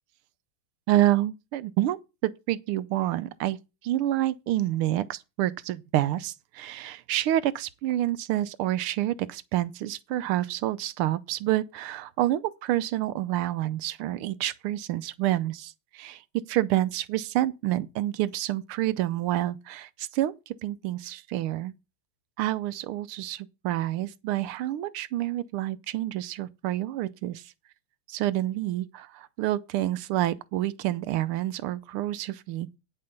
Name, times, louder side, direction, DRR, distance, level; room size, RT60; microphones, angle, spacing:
voice 1, 0.9-2.0 2.2-3.6 3.8-16.2 16.5-21.7 22.4-27.4 28.1-32.7, right 14 dB, 90° right, 1.6 m, -28 dB
9.5 x 6.6 x 5.2 m
omnidirectional pair, 2.3 m